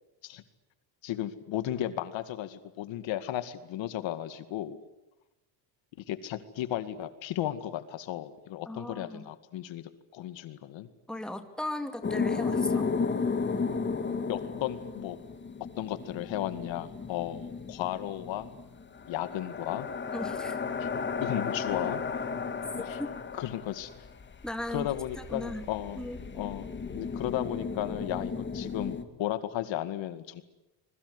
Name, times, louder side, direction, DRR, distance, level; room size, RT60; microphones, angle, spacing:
voice 1, 1.0-4.8 6.0-10.9 12.7-12.9 14.3-15.2 15.8-18.6 19.1-19.9 20.8-20.9 21.2-22.2 22.8-23.0 23.3-24.1 24.7-26.1 26.3-30.4, left 12 dB, 65° left, 11 dB, 2.2 m, -35 dB
voice 2, 8.7-9.3 11.1-12.9 20.1-20.6 22.8-23.1 24.4-24.9 25.2-25.7 26.0-26.2, left 1 dB, ahead, 7 dB, 2.3 m, -37 dB
sound 1, 12.0-29.0, left 5 dB, 20° left, 2.2 m, -34 dB
26.5 x 22.0 x 9.7 m, 0.97 s
cardioid pair, 140°, 49 cm